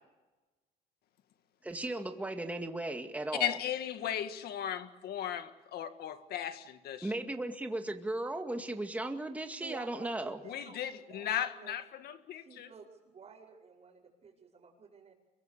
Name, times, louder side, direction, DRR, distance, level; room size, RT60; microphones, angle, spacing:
voice 1, 1.6-3.6 7.0-10.4, right 2 dB, 10° right, 5 dB, 2.2 m, -36 dB
voice 2, 3.4-7.1 10.4-12.7, left 10 dB, 70° left, 9 dB, 1.9 m, -36 dB
voice 3, 9.6-10.8 11.1-11.8 12.3-12.9 13.1-15.1, right 5 dB, 40° right, -6 dB, 5.5 m, -52 dB
25.0 x 23.0 x 6.8 m, 1.1 s
cardioid pair, 110°, 17 cm